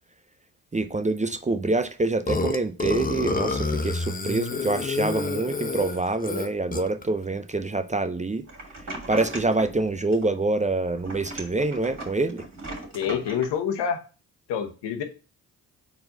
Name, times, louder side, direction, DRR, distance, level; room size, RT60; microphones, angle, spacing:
voice 1, 0.7-8.4 9.1-12.4, right 2 dB, 15° right, 0.6 m, -26 dB
Burping eructation, 2.3-7.0, left 3 dB, 20° left, 0.8 m, -28 dB
sound 1, 8.5-9.8 10.1-10.7 11.0-13.5, right 2 dB, 40° right, 2.9 m, -38 dB
voice 2, 12.9-14.0 14.5-15.0, left 7 dB, 75° left, 1.1 m, -27 dB
4.4 x 4.2 x 5.3 m
hypercardioid pair, 40°, 43 cm